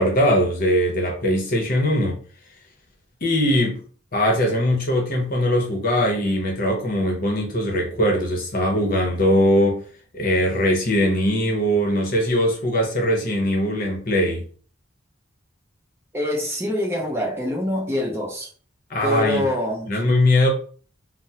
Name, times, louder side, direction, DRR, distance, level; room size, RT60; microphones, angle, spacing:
voice 1, 0.0-2.2 3.2-3.8 4.1-9.8 10.1-14.4 18.9-19.5 19.9-20.5, equal, 45° left, 0.8 m, -21 dB
voice 2, 16.1-18.5 19.0-20.0, left 1 dB, 15° right, 0.7 m, -25 dB
3.4 x 2.0 x 2.8 m
head